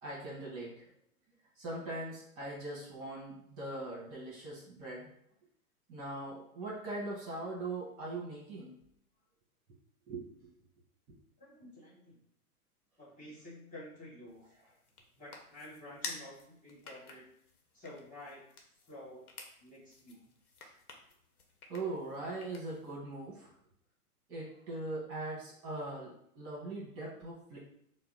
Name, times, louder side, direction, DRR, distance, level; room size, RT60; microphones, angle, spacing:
voice 1, 0.0-0.9 1.6-5.1 5.9-8.7 10.1-10.5 20.6-20.7 21.7-23.5 24.3-27.6, right 2 dB, 30° right, -4 dB, 1.3 m, -41 dB
voice 2, 11.4-12.2 13.0-14.4 15.2-17.2 17.7-18.4 18.9-19.2 19.6-20.2, left 1 dB, 15° left, -6 dB, 1.5 m, -50 dB
sound 1, 14.3-23.0, left 3 dB, 75° left, 0.9 m, -51 dB
4.3 x 2.0 x 3.9 m, 0.70 s
figure-of-eight pair, 110°, 45 cm